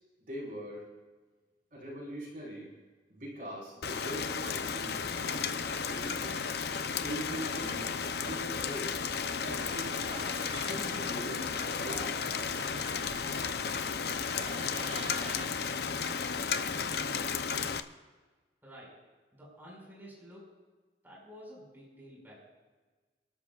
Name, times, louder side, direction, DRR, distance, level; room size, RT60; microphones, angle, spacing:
voice 1, 0.2-0.8 1.7-2.7 3.1-5.6 5.9-6.4 7.0-7.9 8.2-9.0 9.4-10.0 10.6-12.3, equal, 50° right, -4 dB, 4.7 m, -42 dB
Rain, 3.8-17.8, left 6 dB, 65° left, 0.6 m, -34 dB
sound 1, 6.8-17.5, right 2 dB, 90° right, 5.1 m, -57 dB
sound 2, 9.4-15.5, right 3 dB, 30° right, 1.4 m, -47 dB
voice 2, 18.6-19.0 19.3-20.5 21.0-22.4, equal, 10° right, -4 dB, 5.5 m, -51 dB
29.5 x 12.5 x 2.4 m, 1.3 s
head